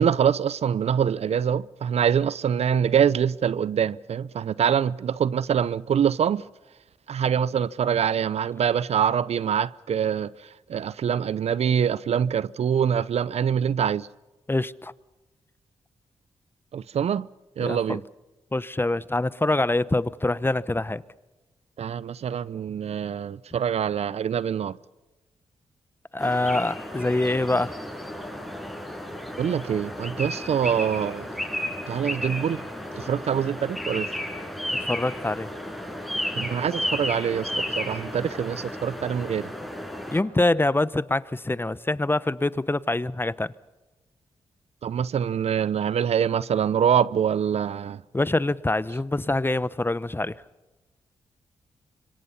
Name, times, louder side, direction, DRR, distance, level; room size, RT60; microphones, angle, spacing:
voice 1, 0.0-6.4 7.1-10.3 10.7-14.1 16.7-17.3 17.6-18.0 21.8-24.8 29.4-31.3 31.9-32.6 32.9-34.1 36.4-37.5 37.8-39.5 44.8-48.0, right 8 dB, 65° right, 0.7 m, -24 dB
voice 2, 14.5-14.9 17.6-18.0 18.5-21.0 26.1-27.8 34.7-35.5 40.1-43.5 48.1-50.3, left 2 dB, 20° left, 1.0 m, -25 dB
sound 1, 26.2-40.2, left 1 dB, ahead, 7.0 m, -33 dB
26.0 x 25.0 x 5.6 m
supercardioid pair, 45°, 12 cm